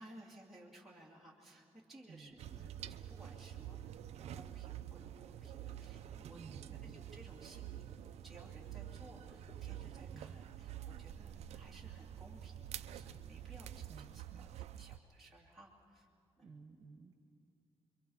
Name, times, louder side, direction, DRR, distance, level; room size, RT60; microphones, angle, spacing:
voice 1, 0.0-2.7 3.1-3.8 4.2-6.4 6.8-7.9 8.1-16.1 16.4-16.5, right 1 dB, ahead, -5 dB, 2.6 m, -59 dB
sound 1, 2.1-9.7, left 1 dB, 30° left, 7.6 m, -66 dB
voice 2, 2.1-2.7 6.3-7.0 9.9-10.4 13.9-14.5 16.4-17.1, right 4 dB, 40° right, 3 dB, 1.6 m, -56 dB
sound 2, 2.4-15.0, right 11 dB, 90° right, 0.5 m, -48 dB
28.5 x 23.5 x 5.6 m, 2.5 s
wide cardioid pair, 145°, 11 cm